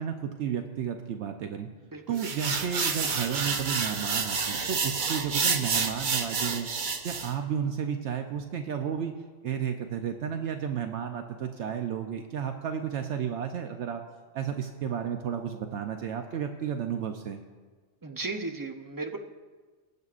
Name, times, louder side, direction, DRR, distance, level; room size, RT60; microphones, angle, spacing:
voice 1, 0.0-1.7 2.1-6.7 7.0-9.1 9.4-14.0 14.3-17.4, right 8 dB, 75° right, 5 dB, 0.9 m, -32 dB
sound 1, 2.2-7.3, right 5 dB, 50° right, 0.8 m, -29 dB
voice 2, 18.0-19.2, right 3 dB, 30° right, 4 dB, 0.4 m, -35 dB
20.0 x 8.5 x 2.4 m, 1.4 s
omnidirectional pair, 1.2 m